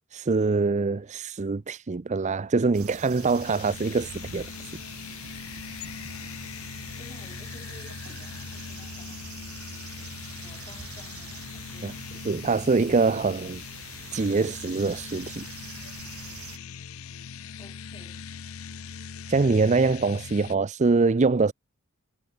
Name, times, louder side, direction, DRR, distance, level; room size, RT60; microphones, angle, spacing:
voice 1, 0.1-4.5 11.8-11.9 12.2-13.6 14.1-15.5 19.3-21.5, right 4 dB, 35° right, 0.5 m, -24 dB
sound 1, 2.7-16.6, right 7 dB, 85° right, 1.7 m, -45 dB
sound 2, 3.1-20.6, left 6 dB, 70° left, 0.7 m, -41 dB
voice 2, 6.9-9.2 10.4-12.1 17.6-18.3, left 2 dB, 25° left, 6.0 m, -52 dB
head